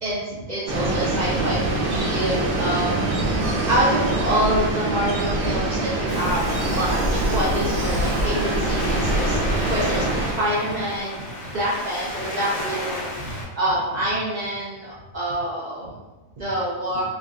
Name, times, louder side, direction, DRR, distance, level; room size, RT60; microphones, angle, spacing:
voice 1, 0.0-9.4 9.7-11.2 11.5-15.9 16.4-17.0, right 1 dB, 65° right, -7 dB, 0.4 m, -26 dB
sound 1, 0.7-10.3, right 2 dB, 85° right, 1.1 m, -24 dB
Waves surf, 6.1-13.4, left 1 dB, 60° left, 0.9 m, -32 dB
3.3 x 2.5 x 2.3 m, 1.1 s
omnidirectional pair, 1.4 m